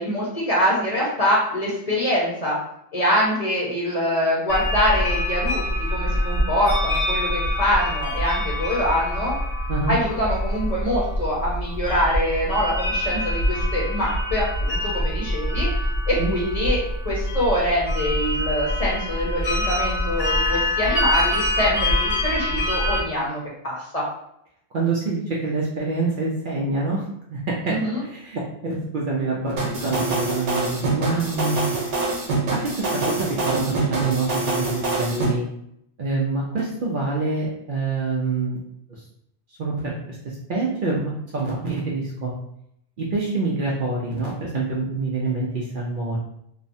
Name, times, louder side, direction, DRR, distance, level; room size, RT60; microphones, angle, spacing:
voice 1, 0.0-2.6 2.9-9.3 9.9-15.7 16.1-16.8 17.0-24.0 27.7-28.0, equal, 35° left, -5 dB, 0.8 m, -24 dB
sound 1, 4.5-23.0, left 1 dB, 80° left, 1.2 m, -25 dB
voice 2, 24.7-27.0 27.3-27.7 28.0-31.6 32.6-35.4 36.0-38.6 38.9-39.0 39.6-39.9 40.5-42.3 43.0-46.2, right 3 dB, 60° right, -4 dB, 0.6 m, -26 dB
sound 2, 29.6-35.3, right 3 dB, 80° right, 1.1 m, -25 dB
3.0 x 2.0 x 2.6 m, 0.75 s
omnidirectional pair, 1.2 m